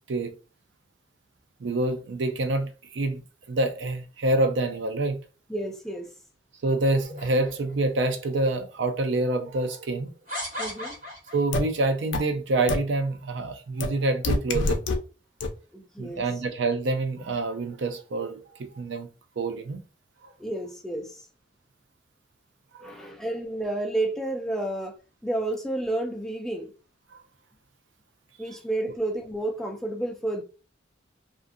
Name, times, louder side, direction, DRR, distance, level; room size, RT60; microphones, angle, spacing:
voice 1, 1.6-3.2 3.5-5.2 6.6-10.1 11.3-14.8 16.0-19.1 19.4-19.8 20.2-20.3 22.7-23.1, right 2 dB, 70° right, 0.5 m, -27 dB
voice 2, 5.5-6.1 10.6-11.0 15.7-16.2 20.4-21.2 22.8-25.0 25.2-26.7 28.4-30.4, right 1 dB, ahead, 0.3 m, -30 dB
sound 1, 7.0-8.0 8.8-8.9 10.3-11.6, left 1 dB, 45° right, 1.4 m, -36 dB
sound 2, 11.5-11.6 12.1-12.2 12.7-12.8 13.8-13.9 14.2-15.0 15.4-15.5, left 3 dB, 80° left, 0.4 m, -24 dB
2.5 x 2.5 x 2.5 m
head